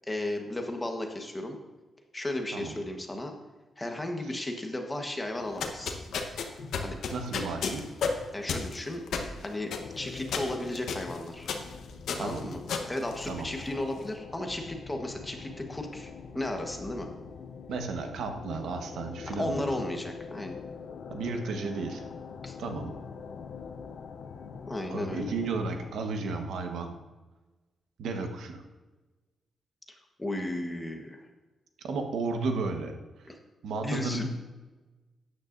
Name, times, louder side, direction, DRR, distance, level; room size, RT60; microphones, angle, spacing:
voice 1, 0.1-1.6 2.1-3.3 3.8-5.9 6.8-7.0 8.3-9.0 9.4-11.5 12.2-12.6 12.9-17.1 19.4-20.6 22.4-22.6 24.7-25.3 30.2-31.2 33.3-33.4 33.8-34.3, left 1 dB, 15° left, 3 dB, 1.3 m, -34 dB
sound 1, 5.4-13.8, left 5 dB, 90° left, 1.1 m, -34 dB
voice 2, 7.1-7.9 12.2-12.4 13.3-13.5 17.7-19.7 21.1-22.0 22.6-22.9 24.9-27.0 28.0-28.6 31.8-32.9 33.6-34.3, right 3 dB, 90° right, 4 dB, 1.3 m, -33 dB
sound 2, 9.8-25.9, left 5 dB, 65° left, 0.6 m, -44 dB
13.0 x 9.5 x 2.6 m, 1.2 s
cardioid pair, 130°, 0 cm